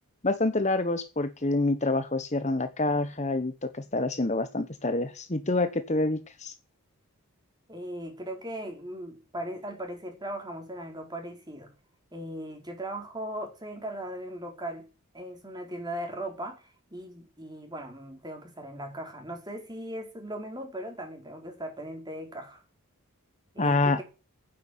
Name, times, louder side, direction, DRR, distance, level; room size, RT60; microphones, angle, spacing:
voice 1, 0.2-6.5 23.6-24.0, left 2 dB, 30° left, 1.1 m, -27 dB
voice 2, 7.7-11.7 12.1-14.9 15.1-22.6 23.5-24.0, right 1 dB, 20° right, 4.7 m, -38 dB
11.5 x 9.8 x 9.3 m
head